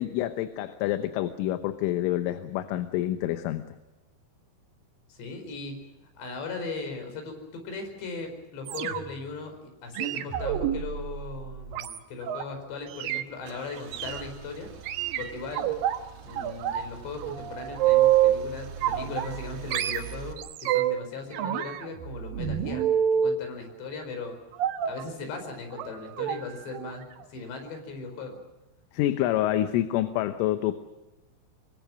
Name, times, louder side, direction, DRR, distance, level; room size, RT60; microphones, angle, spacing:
voice 1, 0.0-3.7 28.9-30.8, left 13 dB, 80° left, 9 dB, 3.4 m, -27 dB
voice 2, 5.1-5.8 6.2-14.7 15.2-15.7 16.2-22.9 23.1-24.4 24.8-27.0 27.3-28.4, left 4 dB, 60° left, 5 dB, 6.7 m, -38 dB
sound 1, 8.7-9.3 9.9-12.4 12.9-13.2 13.9-14.2 14.9-16.0 16.4-16.9 17.2-18.4 18.8-19.4 19.7-21.0 21.3-23.4 24.6-25.0 25.7-25.9 26.2-26.4 26.7-26.9 27.2-27.3, right 10 dB, 80° right, 2.0 m, -27 dB
Car / Engine starting / Idling, 12.6-20.3, right 7 dB, 50° right, 2.4 m, -43 dB
25.5 x 23.5 x 6.2 m, 1.1 s
omnidirectional pair, 5.9 m